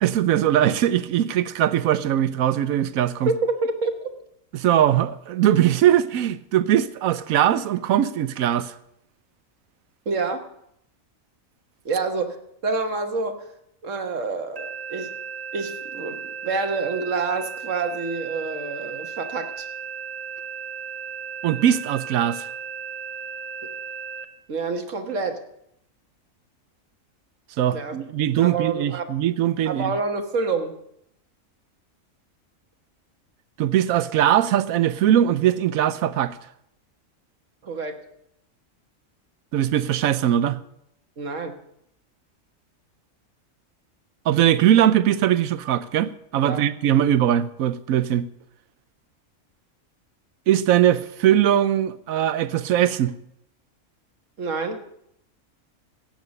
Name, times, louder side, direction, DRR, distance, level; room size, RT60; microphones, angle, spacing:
voice 1, 0.0-3.3 4.5-8.7 21.4-22.5 27.6-29.9 33.6-36.4 39.5-40.6 44.3-48.3 50.5-53.1, right 11 dB, 85° right, 1.1 m, -20 dB
voice 2, 3.2-4.1 10.0-10.5 11.8-12.4 12.6-13.4 13.8-15.1 15.5-19.7 24.5-25.4 27.7-28.0 28.4-29.1 29.6-30.8 37.6-38.0 41.2-41.5 46.4-46.6 54.4-54.8, right 4 dB, 65° right, 1.6 m, -27 dB
sound 1, 14.6-24.3, right 6 dB, 35° right, 0.9 m, -35 dB
14.5 x 9.0 x 5.2 m
omnidirectional pair, 1.4 m